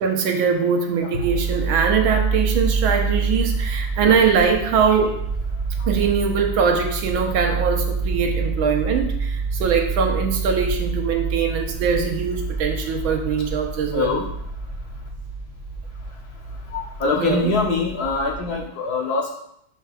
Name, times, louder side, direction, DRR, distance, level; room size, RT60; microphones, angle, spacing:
voice 1, 0.0-5.1 5.9-14.2 17.2-17.5, right 6 dB, 80° right, 3 dB, 1.6 m, -22 dB
sound 1, 1.2-18.6, right 4 dB, 25° right, 1.2 m, -27 dB
voice 2, 13.9-14.3 16.7-19.3, left 3 dB, 60° left, 0 dB, 1.1 m, -23 dB
11.0 x 4.6 x 2.3 m, 0.74 s
omnidirectional pair, 2.2 m